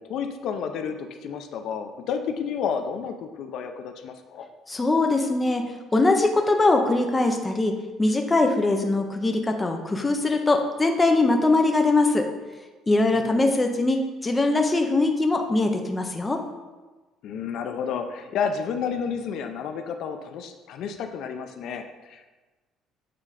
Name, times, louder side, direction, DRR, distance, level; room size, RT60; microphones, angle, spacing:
voice 1, 0.0-4.5 13.1-13.5 17.2-22.3, left 6 dB, 60° left, 6 dB, 0.5 m, -31 dB
voice 2, 4.7-5.7 5.9-7.7 8.0-12.3 12.9-16.4, left 2 dB, 15° left, 4 dB, 0.5 m, -22 dB
7.6 x 3.8 x 4.9 m, 1.2 s
cardioid pair, 165°, 0 cm